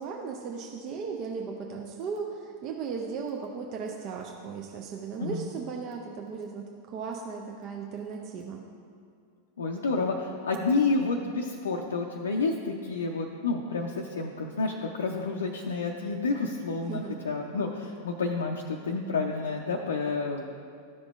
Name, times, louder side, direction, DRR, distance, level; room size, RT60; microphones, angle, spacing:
voice 1, 0.0-8.6 16.9-17.2, right 5 dB, 40° right, 1 dB, 0.6 m, -36 dB
voice 2, 9.6-20.4, left 3 dB, 70° left, 0 dB, 0.5 m, -29 dB
13.5 x 5.2 x 2.4 m, 2.3 s
figure-of-eight pair, 90°, 0 cm